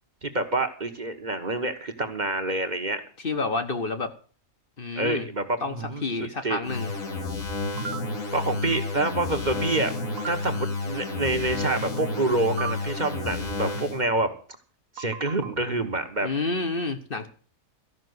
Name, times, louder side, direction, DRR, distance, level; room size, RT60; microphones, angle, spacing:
voice 1, 0.2-3.0 5.0-6.6 8.3-9.9 10.3-14.3 15.0-16.3, right 2 dB, 35° right, 6 dB, 1.3 m, -27 dB
voice 2, 3.2-4.1 4.8-5.3 5.6-6.9 16.2-17.3, left 3 dB, 45° left, 7 dB, 1.3 m, -29 dB
sound 1, 6.6-14.0, left 3 dB, 85° left, 3.1 m, -31 dB
sound 2, 7.8-8.0 10.2-10.3 12.6-12.7 15.0-15.5, right 6 dB, 80° right, 1.4 m, -34 dB
14.0 x 6.0 x 9.4 m, 0.41 s
omnidirectional pair, 1.4 m